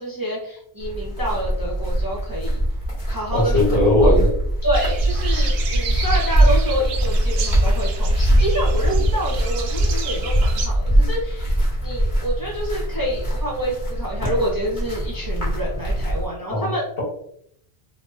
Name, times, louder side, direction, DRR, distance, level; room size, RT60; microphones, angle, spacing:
voice 1, 0.0-2.6 3.1-3.6 4.0-4.2 4.6-11.5 11.8-17.0, equal, 20° right, -5 dB, 0.7 m, -27 dB
sound 1, 0.8-16.3, right 1 dB, 45° left, 1.3 m, -21 dB
voice 2, 3.3-4.3 16.4-16.7, left 2 dB, 60° left, -4 dB, 1.5 m, -18 dB
sound 2, 4.7-10.7, right 5 dB, 90° right, 0.9 m, -32 dB
2.9 x 2.7 x 3.2 m, 0.69 s
omnidirectional pair, 1.1 m